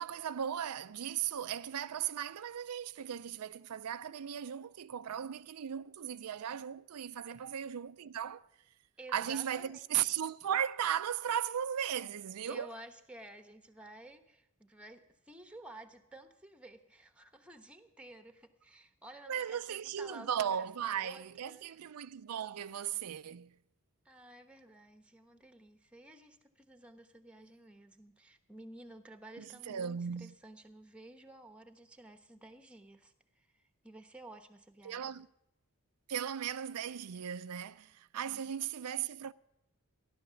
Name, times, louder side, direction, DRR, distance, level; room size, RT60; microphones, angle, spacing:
voice 1, 0.0-8.5 9.1-12.7 19.3-23.5 29.4-30.3 34.8-35.3 36.1-39.3, right 9 dB, 85° right, 0.5 m, -37 dB
voice 2, 9.0-9.9 12.4-21.7 24.0-35.1 38.3-38.5, right 1 dB, 5° right, 1.1 m, -53 dB
15.5 x 11.5 x 7.0 m
head